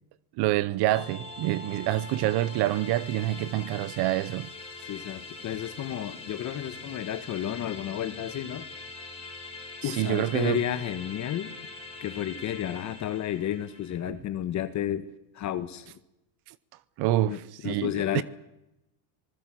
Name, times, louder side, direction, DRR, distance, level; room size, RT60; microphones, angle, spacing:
voice 1, 0.4-4.5 9.8-10.6 14.1-14.2 17.0-18.2, right 15 dB, 55° right, 0.8 m, -27 dB
sound 1, 0.9-14.0, left 3 dB, 10° left, 5.8 m, -43 dB
voice 2, 4.8-8.7 9.8-11.5 12.0-15.1 15.3-15.9 17.3-18.2, left 11 dB, 35° left, 1.2 m, -32 dB
25.5 x 20.5 x 7.6 m
cardioid pair, 155°, 48 cm